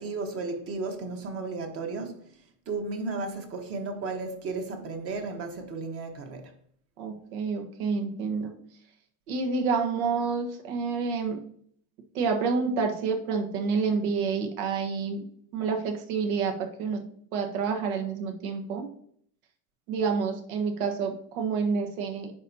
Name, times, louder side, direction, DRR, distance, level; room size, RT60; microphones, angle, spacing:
voice 1, 0.0-2.3 2.7-6.5, right 3 dB, 30° right, 1.2 m, -34 dB
voice 2, 7.0-8.5 9.3-11.4 12.1-15.2 15.5-17.0 17.3-18.9 19.9-22.3, right 5 dB, 75° right, 1.4 m, -28 dB
10.5 x 4.1 x 2.8 m
supercardioid pair, 145°, 43 cm